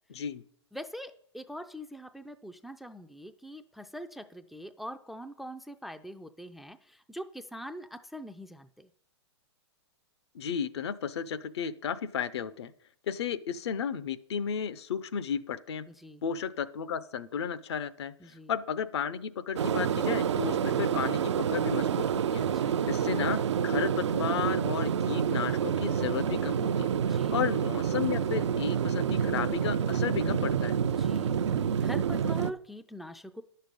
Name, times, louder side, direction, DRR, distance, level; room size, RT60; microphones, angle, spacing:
voice 1, 0.1-0.4 10.3-12.7 13.1-15.9 16.2-30.8, left 7 dB, 65° left, 14 dB, 0.7 m, -33 dB
voice 2, 0.7-8.9 15.9-16.2 18.2-18.5 20.5-20.8 22.5-22.8 27.0-27.4 30.9-31.4 31.8-33.4, equal, ahead, 9 dB, 0.4 m, -43 dB
sound 1, 19.6-32.5, right 8 dB, 75° right, 0.5 m, -28 dB
10.0 x 6.7 x 5.3 m, 0.64 s
hypercardioid pair, 125°, 15 cm